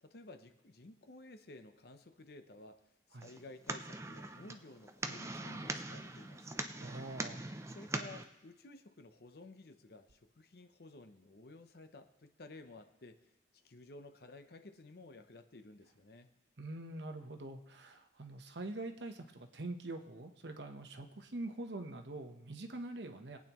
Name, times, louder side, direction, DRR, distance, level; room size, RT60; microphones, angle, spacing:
voice 1, 0.0-2.8 3.1-6.6 7.7-13.2 13.5-16.3, left 2 dB, 60° left, 8 dB, 0.8 m, -54 dB
sound 1, 3.2-8.2, right 2 dB, 15° right, 0.5 m, -42 dB
voice 2, 6.8-7.4 16.6-23.4, right 2 dB, 75° right, 5 dB, 1.0 m, -44 dB
22.0 x 8.6 x 3.0 m, 0.91 s
head